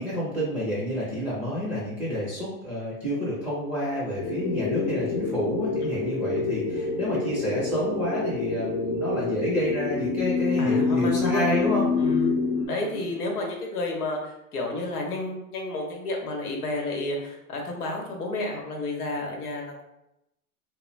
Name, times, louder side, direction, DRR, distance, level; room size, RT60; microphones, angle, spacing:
voice 1, 0.0-11.8 12.5-13.1, equal, 5° right, -9 dB, 0.5 m, -29 dB
sound 1, 4.2-12.7, left 4 dB, 45° left, 0.5 m, -27 dB
voice 2, 10.6-12.3 12.7-19.8, left 2 dB, 85° left, 0 dB, 0.9 m, -31 dB
2.4 x 2.0 x 3.0 m, 0.86 s
hypercardioid pair, 115°, 44 cm